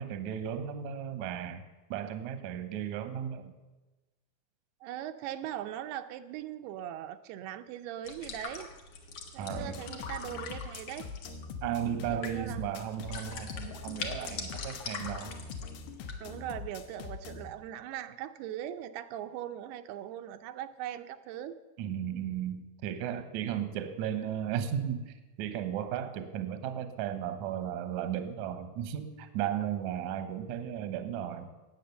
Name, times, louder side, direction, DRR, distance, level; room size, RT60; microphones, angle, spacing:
voice 1, 0.0-1.6 1.9-3.5 9.4-9.8 11.6-15.3 21.8-31.5, right 9 dB, 65° right, 9 dB, 1.9 m, -35 dB
voice 2, 4.8-8.7 9.3-11.1 12.1-12.7 16.2-21.6, right 11 dB, 85° right, 8 dB, 2.7 m, -40 dB
sound 1, 8.1-16.1, left 5 dB, 60° left, 2.7 m, -43 dB
sound 2, 9.5-17.5, left 4 dB, 80° left, 2.9 m, -43 dB
19.0 x 8.3 x 6.9 m, 1.2 s
omnidirectional pair, 4.5 m